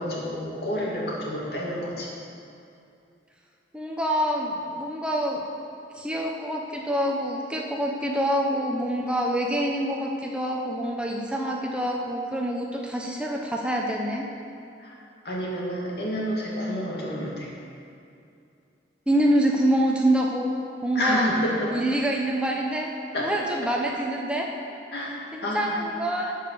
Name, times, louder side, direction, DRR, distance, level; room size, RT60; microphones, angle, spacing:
voice 1, 0.0-2.1 14.8-15.0 15.2-17.5 20.9-21.7 23.1-23.3 24.9-25.7, equal, 65° left, -4 dB, 2.4 m, -29 dB
voice 2, 3.7-5.5 5.9-14.3 19.1-20.5 20.8-21.3 21.7-22.9 23.2-24.5 25.3-26.4, right 1 dB, 5° right, 0 dB, 0.7 m, -26 dB
12.0 x 5.3 x 6.8 m, 2.6 s
head